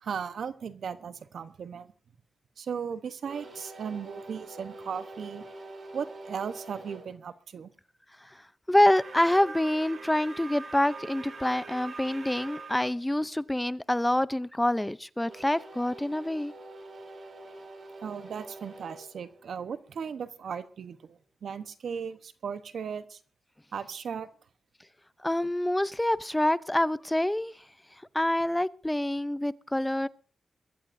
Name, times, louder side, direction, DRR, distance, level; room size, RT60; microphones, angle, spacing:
voice 1, 0.0-1.9 2.6-5.4 5.9-7.7 18.0-23.2 23.7-24.3, right 7 dB, 75° right, 1.0 m, -37 dB
sound 1, 3.2-7.1 8.8-12.9 15.2-20.1, right 3 dB, 60° right, 3.5 m, -45 dB
voice 2, 8.7-16.5 25.2-27.5 28.1-30.1, left 1 dB, 10° left, 0.6 m, -26 dB
23.0 x 14.0 x 2.7 m
cardioid pair, 55°, 0 cm